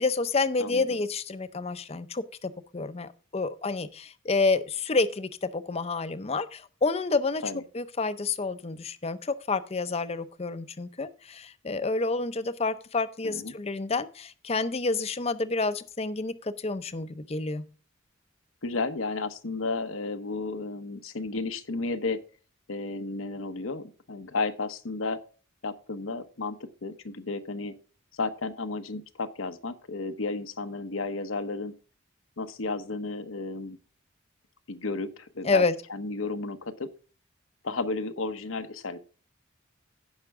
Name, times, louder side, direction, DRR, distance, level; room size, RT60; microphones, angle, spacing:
voice 1, 0.0-7.4 7.7-17.6 35.4-35.7, left 3 dB, 30° left, 0.6 m, -29 dB
voice 2, 13.2-13.5 18.6-22.2 22.7-25.2 25.6-27.7 28.1-31.7 32.4-33.8 34.7-35.6 35.9-36.9 37.6-39.0, left 3 dB, 85° left, 1.0 m, -33 dB
15.5 x 5.8 x 3.5 m
head